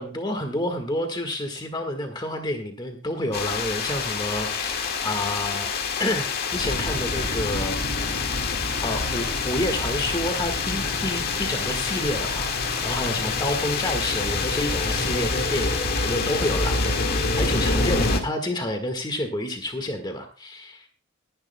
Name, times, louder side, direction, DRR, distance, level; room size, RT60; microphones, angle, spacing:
voice 1, 0.0-5.7 6.0-8.1 8.8-20.9, left 1 dB, 20° left, 5 dB, 1.5 m, -29 dB
sound 1, 3.3-18.2, left 4 dB, 50° left, 1.8 m, -26 dB
sound 2, 10.7-16.0, right 1 dB, 45° right, 2.7 m, -39 dB
20.0 x 11.0 x 2.2 m, 0.38 s
head